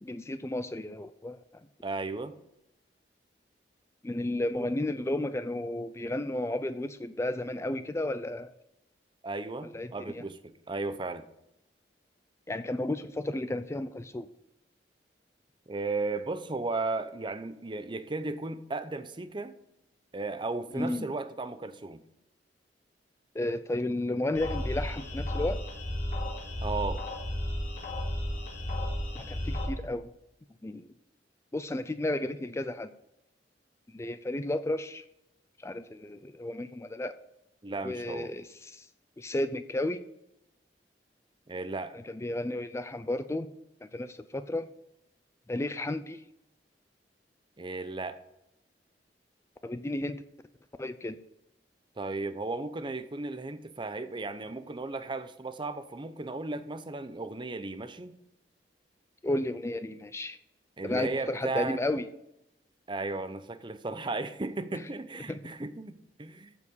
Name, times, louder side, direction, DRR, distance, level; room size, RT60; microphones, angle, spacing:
voice 1, 0.0-1.4 4.0-8.5 9.6-10.2 12.5-14.3 20.8-21.1 23.3-25.6 29.1-30.1 30.6-30.9 31.5-32.9 33.9-35.0 35.6-37.1 37.8-38.9 39.2-40.0 42.1-43.5 43.8-44.7 45.5-46.2 49.6-50.2 50.8-51.2 59.2-60.4 60.8-62.1 64.7-64.8 65.3-65.4, left 1 dB, 15° left, 11 dB, 0.4 m, -33 dB
voice 2, 1.8-2.3 9.2-11.3 15.7-19.6 20.1-22.0 26.6-27.0 37.6-38.3 41.5-42.0 47.6-48.2 52.0-58.2 60.8-61.8 62.9-66.5, right 3 dB, 30° right, 11 dB, 0.7 m, -35 dB
sound 1, 24.4-29.7, left 1 dB, 45° left, 4.7 m, -33 dB
14.5 x 4.9 x 5.2 m, 0.85 s
head